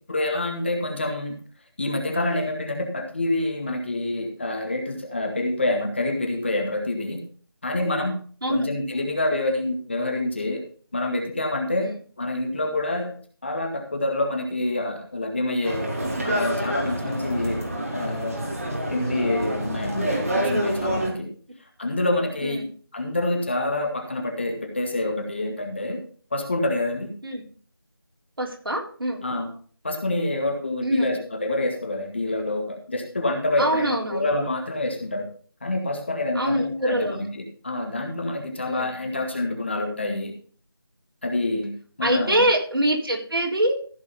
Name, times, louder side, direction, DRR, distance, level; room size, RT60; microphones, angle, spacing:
voice 1, 0.1-1.4 1.8-7.2 7.6-8.1 8.5-10.6 10.9-13.1 13.4-15.9 16.2-17.7 17.9-18.4 18.9-21.3 21.8-22.7 22.9-26.0 26.3-27.1 29.2-29.5 29.8-35.3 35.6-40.3 41.2-42.4, left 2 dB, 30° left, 3 dB, 1.7 m, -27 dB
voice 2, 8.4-8.8 17.4-17.5 19.0-19.2 22.4-22.7 27.2-27.5 28.4-29.2 30.8-31.2 33.6-34.3 36.3-37.2 38.7-38.9 42.0-43.7, right 1 dB, 65° right, -1 dB, 4.1 m, -24 dB
sound 1, 15.6-21.1, right 1 dB, 35° right, 3.1 m, -27 dB
15.0 x 5.3 x 5.4 m, 0.44 s
figure-of-eight pair, 175°, 13 cm